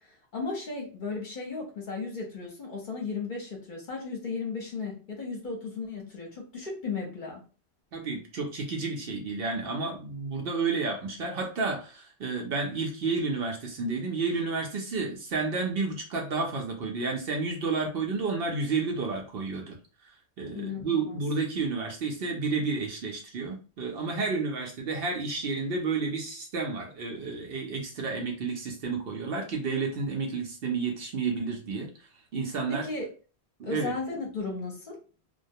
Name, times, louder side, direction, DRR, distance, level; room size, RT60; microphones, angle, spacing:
voice 1, 0.3-7.4 20.5-21.2 32.7-33.1 33.6-35.0, left 4 dB, 50° left, -1 dB, 0.8 m, -35 dB
voice 2, 7.9-19.8 20.4-31.9 32.3-32.9 33.6-33.9, right 4 dB, 65° right, 1 dB, 0.8 m, -31 dB
2.3 x 2.1 x 2.6 m, 0.35 s
omnidirectional pair, 1.1 m